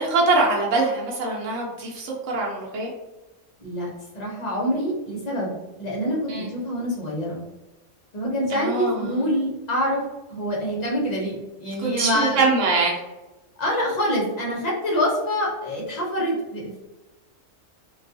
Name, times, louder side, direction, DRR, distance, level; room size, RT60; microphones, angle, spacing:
voice 1, 0.0-2.9 6.3-6.5 8.5-9.3 11.8-12.9, right 3 dB, 70° right, -3 dB, 1.0 m, -23 dB
voice 2, 4.1-7.4 8.1-10.0 10.3-12.6 13.6-16.8, equal, 45° left, -4 dB, 0.6 m, -26 dB
2.3 x 2.2 x 2.5 m, 1.0 s
omnidirectional pair, 1.4 m